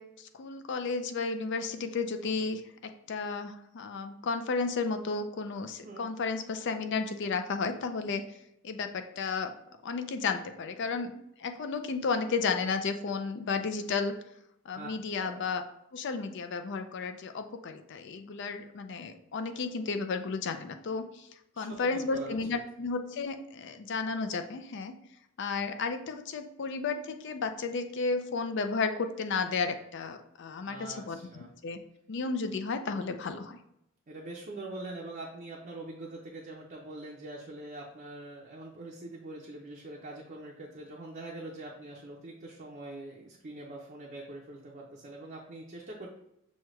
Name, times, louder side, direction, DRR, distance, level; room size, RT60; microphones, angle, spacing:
voice 1, 0.0-8.2 8.6-9.5 9.8-11.1 11.4-14.1 14.7-15.6 15.9-21.3 21.6-25.0 25.4-31.8 32.1-33.6, left 4 dB, 60° left, 8 dB, 0.4 m, -33 dB
voice 2, 21.5-22.4 30.7-31.5 34.1-46.1, right 2 dB, 45° right, -3 dB, 0.6 m, -43 dB
6.2 x 2.3 x 3.0 m, 0.80 s
head